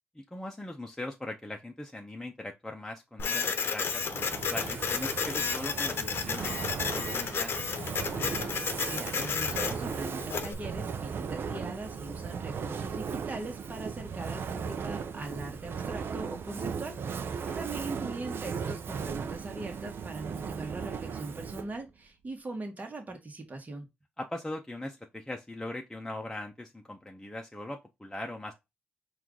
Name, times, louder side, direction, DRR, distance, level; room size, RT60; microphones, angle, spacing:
voice 1, 0.2-7.6 17.4-17.6 24.2-28.5, left 1 dB, 10° left, 0.7 m, -40 dB
Printer, 3.2-10.5, left 5 dB, 75° left, 0.7 m, -32 dB
Fire, 3.9-21.8, right 6 dB, 70° right, 0.5 m, -37 dB
voice 2, 8.5-23.9, right 2 dB, 40° right, 1.3 m, -41 dB
4.4 x 2.5 x 3.7 m
cardioid pair, 60°, 4 cm